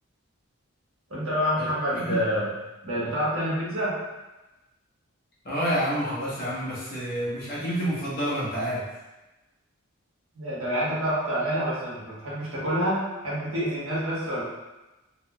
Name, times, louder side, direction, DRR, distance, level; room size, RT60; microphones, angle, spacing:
voice 1, 1.1-2.5 2.8-4.0 10.3-14.4, equal, 75° right, -8 dB, 1.3 m, -27 dB
voice 2, 5.4-8.8, equal, 45° left, -8 dB, 1.0 m, -28 dB
3.1 x 2.3 x 2.9 m, 1.1 s
head